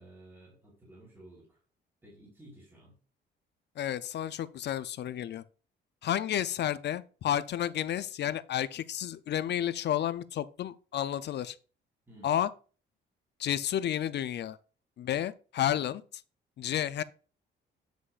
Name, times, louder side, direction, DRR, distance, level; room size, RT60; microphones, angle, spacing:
voice 1, 0.0-1.6 2.0-3.0 12.1-12.4, right 1 dB, 10° right, 3.8 m, -54 dB
voice 2, 3.8-5.4 6.0-11.6 12.2-12.5 13.4-14.6 15.0-16.2 16.6-17.0, left 11 dB, 60° left, 0.5 m, -31 dB
9.6 x 6.2 x 2.5 m
cardioid pair, 90°, 20 cm